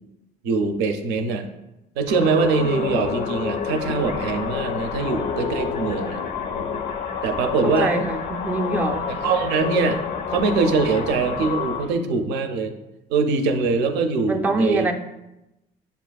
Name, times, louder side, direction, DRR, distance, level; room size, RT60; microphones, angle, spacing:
voice 1, 0.4-1.5 2.0-6.2 7.2-7.9 9.1-10.0 10.3-12.7 13.1-14.9, right 4 dB, 85° right, 7 dB, 0.5 m, -23 dB
sound 1, 2.1-11.8, left 7 dB, 55° left, 0.4 m, -28 dB
sound 2, 3.7-12.0, left 3 dB, 90° left, 0.7 m, -41 dB
voice 2, 7.6-9.1 14.3-14.9, right 2 dB, 10° right, 2 dB, 0.3 m, -24 dB
6.8 x 2.4 x 2.3 m, 0.93 s
cardioid pair, 110°, 17 cm